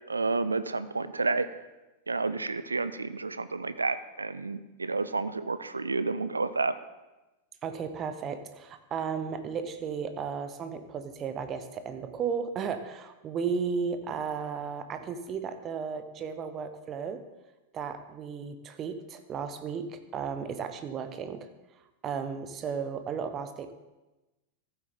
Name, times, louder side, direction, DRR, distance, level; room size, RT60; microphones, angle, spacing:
voice 1, 0.1-1.5 2.1-6.7, right 3 dB, 80° right, 13 dB, 0.4 m, -30 dB
voice 2, 7.6-17.2 17.7-21.5 22.0-23.7, right 6 dB, 30° right, 9 dB, 0.9 m, -34 dB
14.0 x 8.0 x 3.6 m, 1.1 s
figure-of-eight pair, 90°, 0 cm